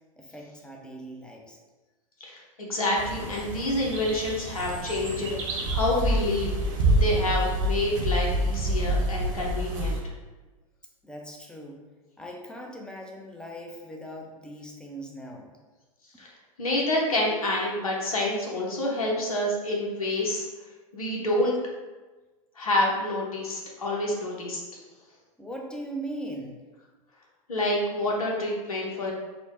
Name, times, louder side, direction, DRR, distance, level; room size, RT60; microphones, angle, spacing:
voice 1, 0.2-1.6 11.0-11.8 12.2-15.5 25.4-26.6, right 1 dB, 5° left, 0 dB, 0.7 m, -39 dB
voice 2, 2.2-6.5 6.8-10.0 16.2-16.3 16.6-20.5 20.9-21.5 22.6-24.6 27.5-29.1, left 1 dB, 80° left, -2 dB, 0.9 m, -28 dB
sound 1, 3.0-10.0, right 1 dB, 60° right, 1.0 m, -27 dB
4.2 x 2.3 x 4.3 m, 1.2 s
hypercardioid pair, 95°, 18 cm